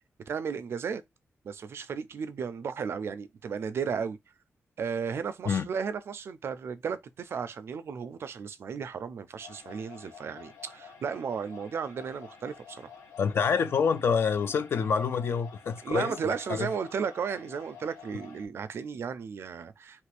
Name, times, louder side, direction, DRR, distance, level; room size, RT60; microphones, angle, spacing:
voice 1, 0.3-1.0 1.4-4.2 4.8-12.9 15.8-20.1, right 6 dB, 55° right, 0.4 m, -34 dB
sound 1, 9.4-18.5, left 6 dB, 85° left, 0.9 m, -50 dB
voice 2, 13.2-16.7, left 6 dB, 55° left, 0.4 m, -27 dB
3.0 x 2.5 x 3.2 m
wide cardioid pair, 175°, 5 cm